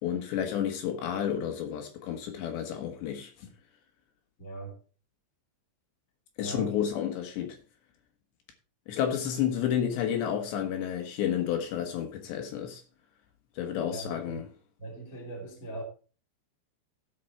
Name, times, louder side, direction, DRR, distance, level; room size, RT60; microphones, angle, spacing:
voice 1, 0.0-3.5 6.4-7.6 8.9-12.8 13.6-14.5, left 9 dB, 70° left, 3.3 m, -31 dB
voice 2, 4.4-4.8 6.4-6.9 13.9-14.4 14.8-15.8, right 2 dB, 25° left, 2.1 m, -40 dB
15.5 x 5.4 x 4.4 m
omnidirectional pair, 5.5 m